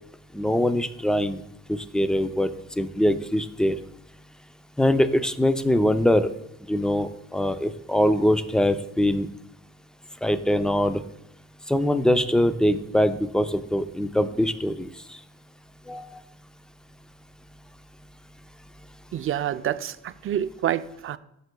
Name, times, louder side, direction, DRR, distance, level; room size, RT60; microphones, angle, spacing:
voice 1, 0.3-1.4 1.7-3.8 4.8-6.3 6.7-9.3 10.2-11.0 11.7-15.2 15.9-16.2, left 1 dB, ahead, 10 dB, 0.5 m, -23 dB
voice 2, 19.1-21.2, right 10 dB, 45° right, 13 dB, 0.5 m, -28 dB
14.0 x 6.7 x 2.3 m, 0.80 s
cardioid pair, 90°, 30 cm